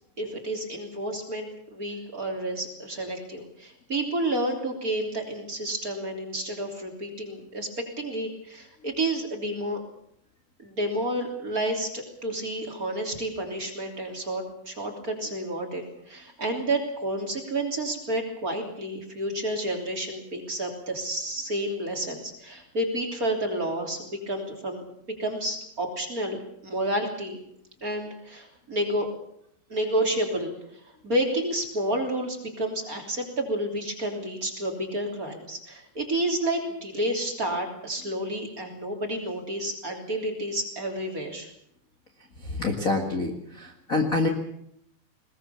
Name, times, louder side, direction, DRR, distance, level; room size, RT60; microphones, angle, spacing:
voice 1, 0.2-7.7 8.0-9.8 10.6-24.8 25.2-27.4 27.8-29.1 29.7-30.5 31.0-41.5, right 1 dB, 25° right, 2 dB, 3.1 m, -30 dB
voice 2, 42.4-44.3, left 3 dB, 50° left, 1 dB, 1.0 m, -27 dB
21.0 x 20.5 x 7.1 m, 0.73 s
omnidirectional pair, 4.8 m